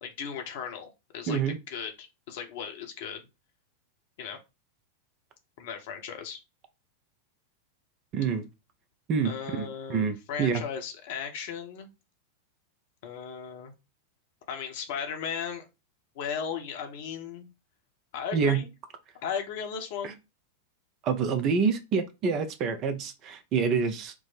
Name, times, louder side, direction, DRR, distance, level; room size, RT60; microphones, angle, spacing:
voice 1, 0.0-3.2 4.2-4.4 5.6-6.4 9.2-11.9 13.0-13.7 14.5-15.6 16.1-17.5 18.1-18.7 19.2-20.2, left 7 dB, 50° left, 0.9 m, -36 dB
voice 2, 1.3-1.6 8.1-8.4 9.1-10.6 18.3-18.6 20.0-20.1 21.0-24.1, right 5 dB, 35° right, 0.6 m, -27 dB
4.7 x 2.1 x 3.9 m
figure-of-eight pair, 90°, 0 cm